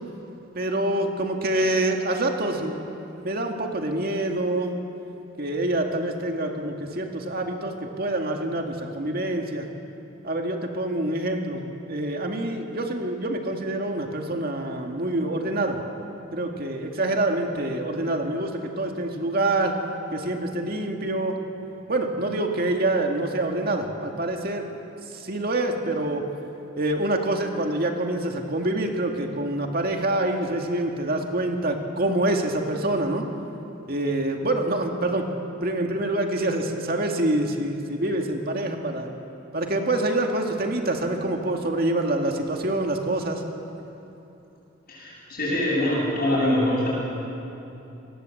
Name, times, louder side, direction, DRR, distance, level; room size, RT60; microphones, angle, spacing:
voice 1, 0.5-2.8 3.2-4.7 5.4-9.7 10.2-15.8 16.3-19.8 20.1-21.4 21.9-24.7 25.1-26.2 26.8-33.3 33.9-35.3 35.6-39.1 39.5-43.4, right 1 dB, 50° right, 2 dB, 2.2 m, -26 dB
voice 2, 44.9-46.9, left 1 dB, 50° left, -9 dB, 7.6 m, -24 dB
26.0 x 19.5 x 7.9 m, 2.9 s
head